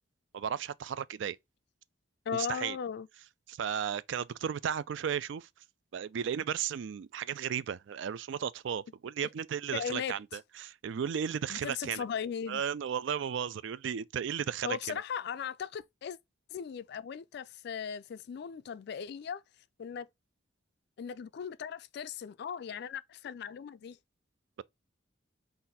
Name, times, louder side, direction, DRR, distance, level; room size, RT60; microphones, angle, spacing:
voice 1, 0.3-1.4 2.3-2.8 3.5-5.5 5.9-12.0 12.5-15.0, right 8 dB, 65° right, 0.3 m, -34 dB
voice 2, 2.3-3.1 9.7-10.2 11.5-12.6 14.6-16.2 16.5-19.4 19.8-20.1 21.0-24.0, left 7 dB, 55° left, 0.3 m, -38 dB
4.0 x 2.6 x 4.0 m
head